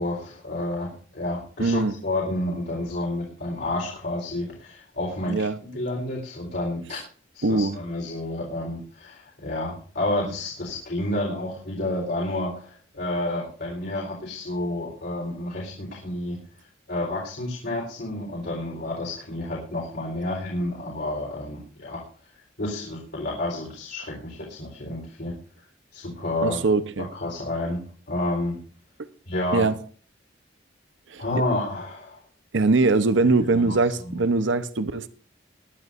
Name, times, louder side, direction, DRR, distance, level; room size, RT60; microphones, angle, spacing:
voice 1, 0.0-7.0 7.3-16.4 16.9-22.0 22.6-25.3 25.9-26.6 27.1-27.8 28.1-28.6 29.3-29.7 31.2-32.2 33.6-33.8 34.0-34.2, left 1 dB, 60° left, 3.9 m, -30 dB
voice 2, 1.6-1.9 5.3-5.6 7.4-7.8 26.4-27.1 29.0-29.1 29.5-29.8 31.1-31.2 32.5-35.1, right 3 dB, 70° right, 0.8 m, -22 dB
21.5 x 11.0 x 2.5 m
head